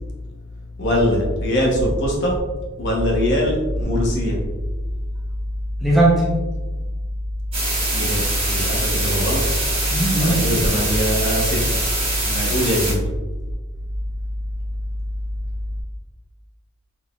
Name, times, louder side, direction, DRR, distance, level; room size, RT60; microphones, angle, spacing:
voice 1, 0.8-2.4 2.8-4.4 7.9-9.4 10.2-11.8 12.5-13.1, equal, 55° left, -2 dB, 0.9 m, -21 dB
voice 2, 5.8-6.3 9.9-10.4 12.2-12.6, right 2 dB, ahead, -6 dB, 0.7 m, -19 dB
sound 1, 7.5-12.9, right 2 dB, 30° right, 1.2 m, -24 dB
3.8 x 3.5 x 2.3 m, 1.2 s
head